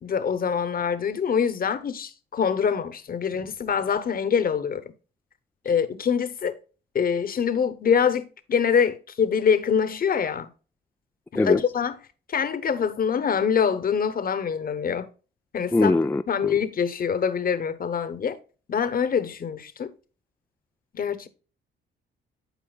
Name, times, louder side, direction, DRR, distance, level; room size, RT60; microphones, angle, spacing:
voice 1, 0.0-4.8 5.6-6.6 6.9-10.5 11.4-11.9 12.3-15.1 15.5-16.0 16.3-18.4 18.7-19.9 20.9-21.3, left 7 dB, 45° left, 1.0 m, -24 dB
voice 2, 15.7-16.5, left 2 dB, 10° left, 0.3 m, -22 dB
11.5 x 4.7 x 2.3 m
cardioid pair, 90°, 20 cm